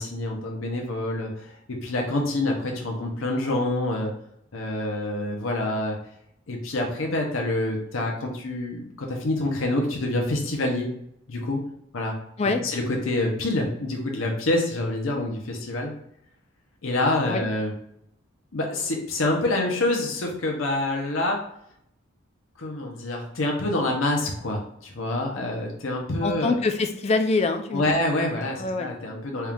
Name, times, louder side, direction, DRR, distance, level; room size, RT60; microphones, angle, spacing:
voice 1, 0.0-1.5 1.8-4.1 4.5-6.0 6.5-10.9 11.3-11.6 11.9-12.1 12.6-15.9 16.8-17.7 18.5-21.4 22.6-26.6 27.7-29.5, left 2 dB, 75° left, 1 dB, 0.8 m, -26 dB
voice 2, 26.2-27.8 28.6-28.9, left 3 dB, 30° left, 6 dB, 0.4 m, -24 dB
4.3 x 2.4 x 3.5 m, 0.73 s
head